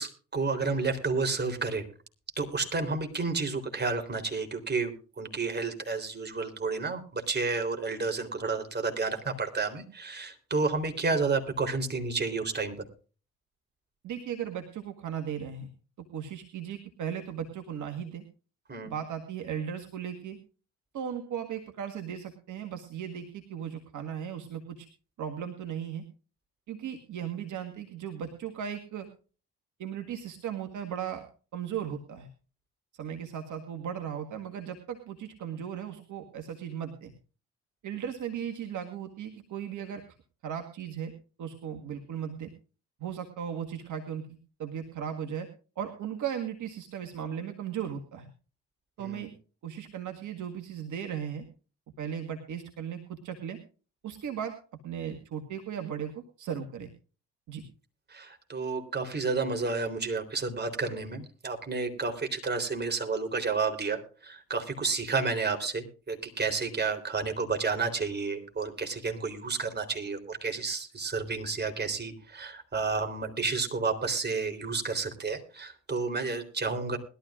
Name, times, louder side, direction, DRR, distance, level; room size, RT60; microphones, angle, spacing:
voice 1, 0.0-1.9 2.4-12.8 18.7-18.9 49.0-49.3 58.1-77.0, right 4 dB, 25° right, 6 dB, 3.7 m, -31 dB
voice 2, 14.0-15.7 16.1-18.2 18.8-20.4 20.9-24.9 25.2-26.1 26.7-29.1 29.8-31.3 31.5-32.3 32.9-37.1 37.8-40.0 40.4-41.1 41.4-42.5 43.0-44.2 44.6-45.5 45.8-48.3 49.0-49.3 49.6-51.5 52.0-53.6 54.0-54.6 54.8-56.9 57.5-57.6, right 8 dB, 50° right, 5 dB, 1.8 m, -36 dB
21.0 x 13.0 x 2.5 m, 0.37 s
hypercardioid pair, 55°, 38 cm